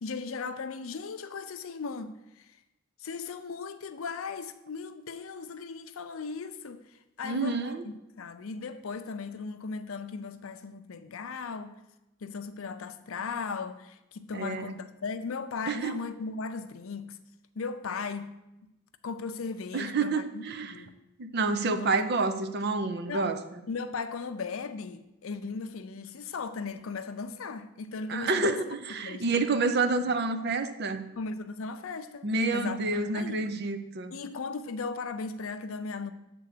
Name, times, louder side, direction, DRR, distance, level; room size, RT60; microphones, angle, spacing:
voice 1, 0.0-2.5 3.0-6.8 7.2-11.8 12.2-17.2 17.6-18.3 18.6-18.7 19.0-20.9 21.8-22.0 23.1-23.3 23.7-28.6 29.0-29.2 31.2-33.5 34.1-36.1, left 4 dB, 75° left, 0.5 m, -37 dB
voice 2, 7.2-7.8 14.3-14.7 15.7-16.0 19.7-20.7 21.2-23.6 28.1-31.1 32.2-34.1, right 3 dB, 50° right, 0.5 m, -29 dB
8.0 x 3.7 x 6.6 m
head